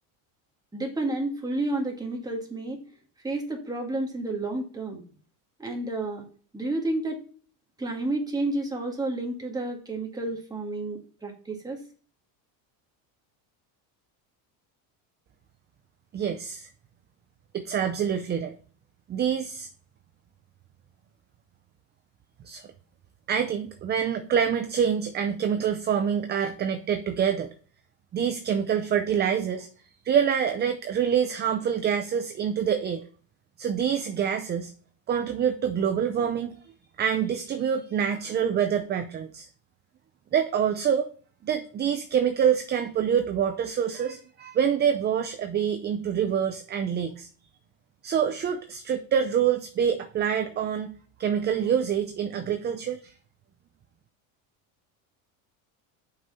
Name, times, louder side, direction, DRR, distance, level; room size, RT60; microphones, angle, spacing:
voice 1, 0.7-2.8 3.2-5.0 5.6-6.2 6.5-7.2 7.8-11.8, right 2 dB, 10° right, 0 dB, 1.9 m, -30 dB
voice 2, 16.1-16.7 17.5-18.6 19.1-19.7 22.4-22.6 23.3-27.5 28.1-29.7 30.0-33.0 33.6-34.7 35.1-36.6 37.0-39.5 40.3-41.1 41.4-47.3 48.0-50.9 51.2-53.1, right 8 dB, 25° right, 8 dB, 0.5 m, -26 dB
6.6 x 5.7 x 4.0 m, 0.42 s
cardioid pair, 135°, 44 cm